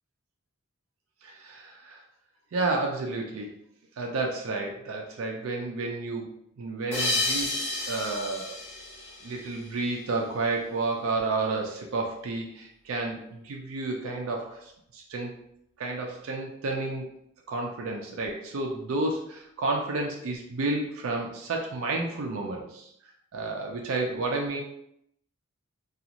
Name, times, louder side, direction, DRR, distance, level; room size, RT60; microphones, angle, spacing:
voice 1, 1.2-2.0 2.5-3.5 4.0-6.3 6.6-8.6 9.2-15.4 15.8-17.0 17.5-22.9 23.3-24.6, right 3 dB, 75° right, 1 dB, 0.4 m, -31 dB
sound 1, 6.9-10.0, left 2 dB, 55° left, 0.8 m, -31 dB
2.5 x 2.4 x 2.8 m, 0.75 s
head